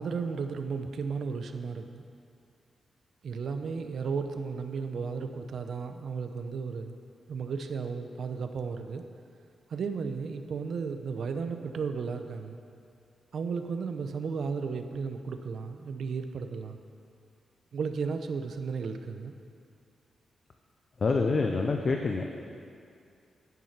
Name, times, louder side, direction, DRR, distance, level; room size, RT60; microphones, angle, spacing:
voice 1, 0.0-2.0 3.2-6.9 7.3-9.0 9.7-12.6 13.3-16.8 17.7-19.3, right 5 dB, 60° right, 7 dB, 0.7 m, -34 dB
voice 2, 21.0-22.3, left 4 dB, 35° left, 3 dB, 0.6 m, -26 dB
11.0 x 9.4 x 5.9 m, 2.4 s
wide cardioid pair, 170°, 0 cm